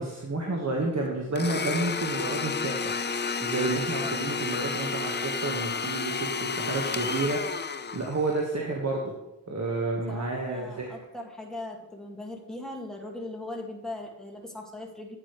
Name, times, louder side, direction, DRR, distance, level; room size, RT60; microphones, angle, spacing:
voice 1, 0.0-3.0 3.4-9.1 9.5-11.0, right 2 dB, 50° right, -1 dB, 1.6 m, -30 dB
Domestic sounds home sounds, 1.4-8.4, left 5 dB, 30° left, 0.5 m, -31 dB
voice 2, 10.1-15.2, left 2 dB, ahead, 0 dB, 2.1 m, -39 dB
8.9 x 8.7 x 3.3 m, 0.93 s
cardioid pair, 50°, 36 cm